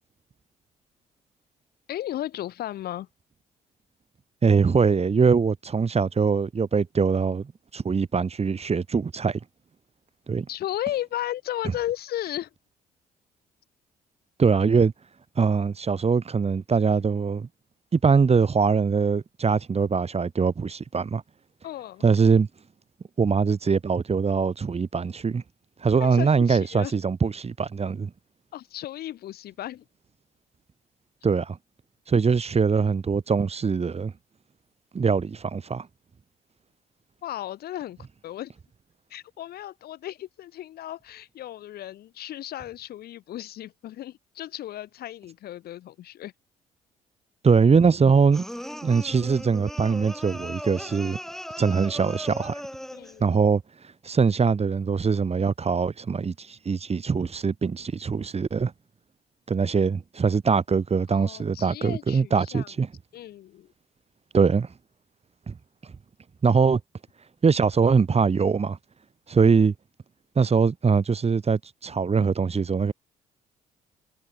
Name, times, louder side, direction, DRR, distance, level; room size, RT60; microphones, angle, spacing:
voice 1, 1.9-3.1 10.5-12.5 21.6-22.0 26.0-26.9 28.5-29.8 37.2-38.5 39.1-46.3 52.9-53.4 61.1-62.7 63.1-63.7, left 13 dB, 65° left, 4.8 m, -35 dB
voice 2, 4.4-9.4 10.3-10.5 14.4-14.9 15.4-17.5 17.9-21.2 22.0-22.5 23.2-25.4 25.8-28.1 31.2-31.6 32.1-34.1 34.9-35.9 47.4-48.5 48.8-51.2 51.6-52.6 53.2-53.6 54.0-58.7 59.5-62.9 64.3-64.7 65.5-65.6 66.4-66.8 67.4-68.8 69.3-69.7 70.4-72.9, right 5 dB, 35° right, 4.1 m, -22 dB
sound 1, 48.3-53.2, equal, ahead, 2.7 m, -38 dB
hypercardioid pair, 50°, 17 cm